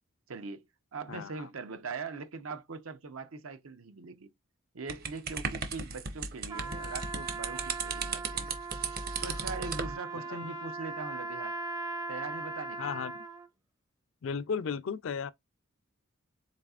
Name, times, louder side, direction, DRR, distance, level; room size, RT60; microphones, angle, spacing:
voice 1, 0.3-0.7 0.9-4.3 4.7-8.5 9.2-11.5 12.1-12.9, right 4 dB, 80° right, 0.7 m, -41 dB
voice 2, 1.1-1.5 10.3-10.4 12.8-13.1 14.2-15.3, left 6 dB, 65° left, 0.4 m, -34 dB
sound 1, 4.9-9.9, right 5 dB, 45° right, 0.8 m, -35 dB
Trumpet, 6.5-13.5, right 3 dB, 15° right, 0.5 m, -39 dB
4.1 x 4.1 x 2.3 m
head